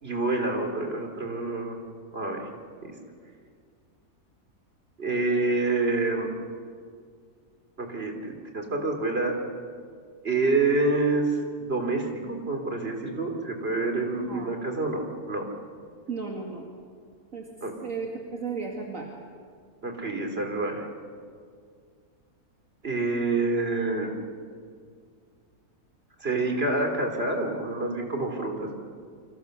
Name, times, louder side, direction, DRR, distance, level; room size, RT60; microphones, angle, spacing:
voice 1, 0.0-1.8 2.1-2.5 2.8-2.9 5.0-6.3 7.8-9.4 10.2-15.5 17.6-17.7 19.8-20.9 22.8-24.1 26.2-28.7, right 3 dB, 40° right, 3 dB, 3.6 m, -27 dB
voice 2, 13.9-14.5 16.1-16.7 17.3-17.5 17.8-19.1, right 5 dB, 55° right, 0 dB, 2.6 m, -35 dB
29.0 x 26.0 x 6.8 m, 2.1 s
omnidirectional pair, 1.6 m